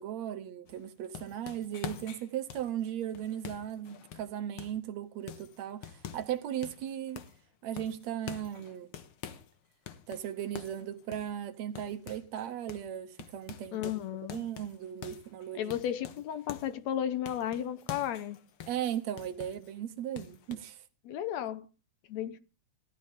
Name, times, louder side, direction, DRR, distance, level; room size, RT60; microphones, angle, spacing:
voice 1, 0.0-7.3 7.6-8.9 10.1-13.8 14.3-15.7 18.7-20.8, right 10 dB, 70° right, 2.0 m, -37 dB
sound 1, 0.7-4.9 5.3-6.4 6.6-7.4 7.8-9.5 9.9-12.4 12.7-12.9 13.2-16.8 17.3-19.7 20.2-20.6, left 9 dB, 55° left, 1.8 m, -46 dB
voice 2, 13.7-14.4 15.6-18.4 21.1-21.7 22.1-22.4, left 10 dB, 70° left, 1.9 m, -34 dB
17.0 x 12.5 x 3.6 m
omnidirectional pair, 3.5 m